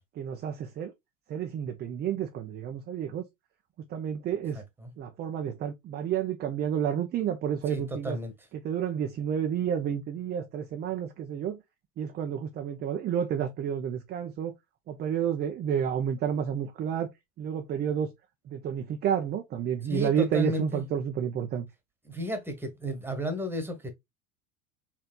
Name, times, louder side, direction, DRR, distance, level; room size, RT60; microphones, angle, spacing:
voice 1, 0.2-0.9 1.3-3.2 3.9-4.6 5.0-8.2 8.5-11.6 12.0-14.5 14.9-17.1 17.4-18.1 18.5-21.7, right 8 dB, 25° right, 0.5 m, -30 dB
voice 2, 4.5-4.9 7.7-8.3 19.9-20.8 22.0-23.9, equal, 5° right, 1.3 m, -33 dB
4.3 x 3.3 x 2.2 m
figure-of-eight pair, 75°, 43 cm